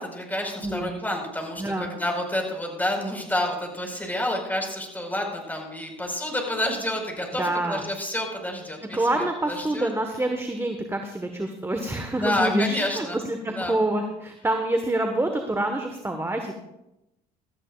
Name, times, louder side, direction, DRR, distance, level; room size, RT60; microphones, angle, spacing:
voice 1, 0.0-9.9 12.1-13.8, left 1 dB, 10° left, 1 dB, 5.0 m, -29 dB
voice 2, 1.6-1.9 7.4-7.8 8.9-16.6, right 1 dB, 10° right, 5 dB, 1.4 m, -27 dB
17.5 x 13.5 x 2.5 m, 0.90 s
hypercardioid pair, 60°, 20 cm